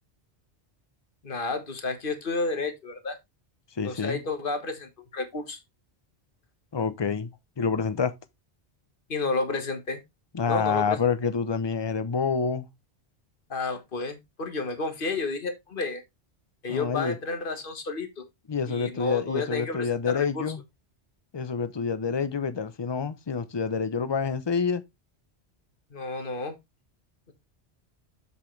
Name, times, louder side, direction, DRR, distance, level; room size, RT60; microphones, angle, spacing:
voice 1, 1.2-3.2 3.8-5.6 9.1-10.0 10.5-11.0 13.5-16.0 16.6-18.2 18.7-20.5 25.9-26.6, left 3 dB, 50° left, 1.7 m, -31 dB
voice 2, 3.8-4.2 6.7-7.3 7.6-8.1 10.3-12.7 16.7-17.2 18.5-20.6 21.3-24.8, left 5 dB, 25° left, 0.7 m, -27 dB
7.4 x 7.0 x 3.2 m
omnidirectional pair, 1.1 m